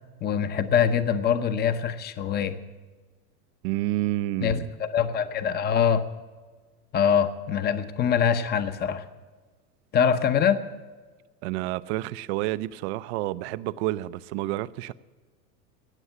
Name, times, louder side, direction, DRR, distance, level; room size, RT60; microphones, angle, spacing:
voice 1, 0.2-2.6 4.4-6.0 6.9-9.0 9.9-10.6, left 7 dB, 20° left, 0.8 m, -24 dB
voice 2, 3.6-4.7 11.4-14.9, right 16 dB, 45° right, 0.6 m, -29 dB
18.0 x 7.2 x 9.5 m
hypercardioid pair, 115°, 48 cm